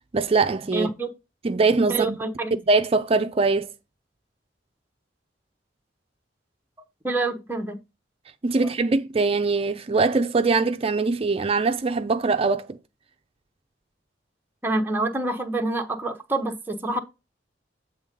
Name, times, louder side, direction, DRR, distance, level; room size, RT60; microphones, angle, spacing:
voice 1, 0.1-0.9 1.4-2.2 2.7-3.7 8.4-12.8, right 3 dB, 35° right, 0.5 m, -22 dB
voice 2, 0.7-1.1 1.9-2.6 7.0-7.8 14.6-17.0, right 2 dB, 10° right, 0.9 m, -27 dB
8.0 x 3.7 x 5.1 m
head